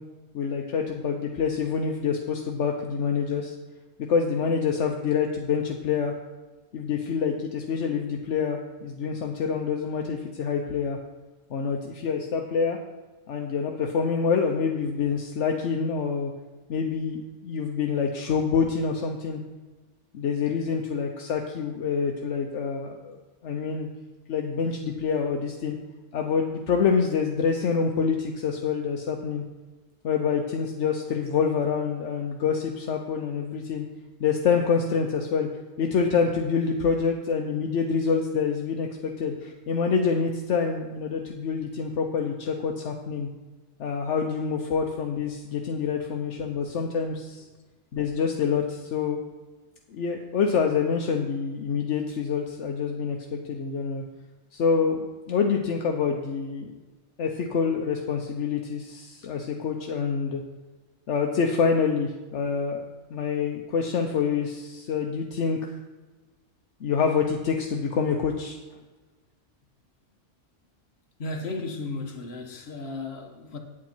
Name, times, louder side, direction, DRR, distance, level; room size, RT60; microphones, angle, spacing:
voice 1, 0.3-3.5 4.1-6.1 6.7-11.0 11.5-12.8 13.3-16.3 16.7-19.4 20.1-23.9 24.3-25.8 26.1-29.4 30.0-33.8 34.2-35.5 35.8-43.3 43.8-47.4 47.9-49.2 49.9-54.0 54.5-56.7 57.2-60.4 61.1-62.8 63.1-65.7 66.8-68.6, left 6 dB, 75° left, 2 dB, 1.1 m, -26 dB
voice 2, 71.2-73.6, left 3 dB, 60° left, 3 dB, 1.3 m, -34 dB
8.6 x 8.6 x 4.4 m, 1.2 s
omnidirectional pair, 1.2 m